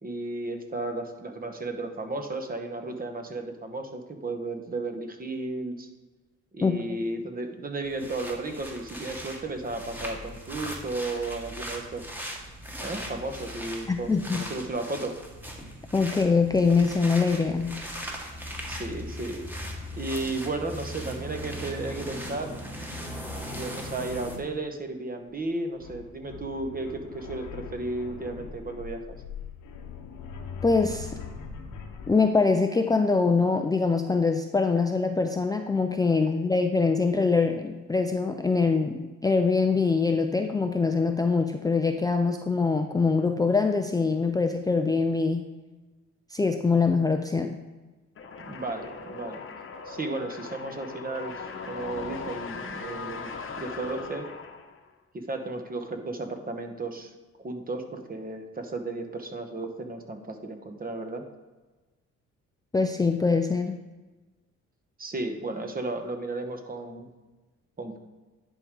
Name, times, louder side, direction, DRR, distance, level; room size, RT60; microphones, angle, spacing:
voice 1, 0.0-5.9 6.5-12.0 12.8-15.2 17.5-17.7 18.7-19.5 20.0-22.5 23.6-29.2 48.4-49.4 49.8-54.3 55.1-57.1 57.4-61.2 65.0-67.1 67.8-68.0, right 2 dB, 30° right, 6 dB, 1.1 m, -34 dB
voice 2, 6.6-7.0 13.9-14.4 15.9-17.8 30.6-31.1 32.1-45.5 46.3-47.6 62.7-63.7, left 4 dB, 15° left, 5 dB, 0.4 m, -24 dB
sound 1, 7.8-24.4, equal, 5° right, 1.5 m, -39 dB
sound 2, 25.2-25.3 25.7-32.1, left 6 dB, 90° left, 1.0 m, -41 dB
sound 3, 48.2-54.9, left 4 dB, 45° left, 1.0 m, -39 dB
10.5 x 3.8 x 4.8 m, 1.2 s
cardioid pair, 90°, 30 cm